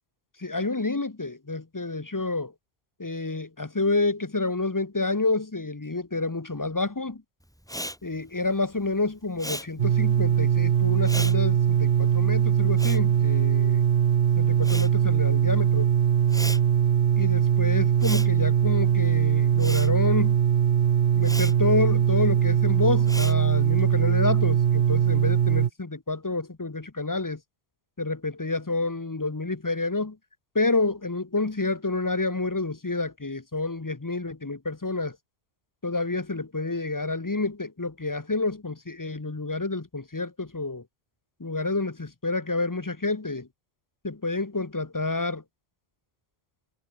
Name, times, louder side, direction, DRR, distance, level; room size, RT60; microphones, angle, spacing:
voice 1, 0.4-2.5 3.0-7.2 8.0-13.8 14.4-15.9 17.2-20.4 21.1-27.4 28.0-30.2 30.5-35.2 35.8-40.8 41.4-43.5 44.0-45.4, left 3 dB, 20° left, 0.8 m, -29 dB
Respiratory sounds, 7.6-14.1 14.3-23.8, equal, 5° left, 4.7 m, -39 dB
sound 1, 9.8-25.7, right 8 dB, 65° right, 1.0 m, -21 dB
omnidirectional pair, 1.1 m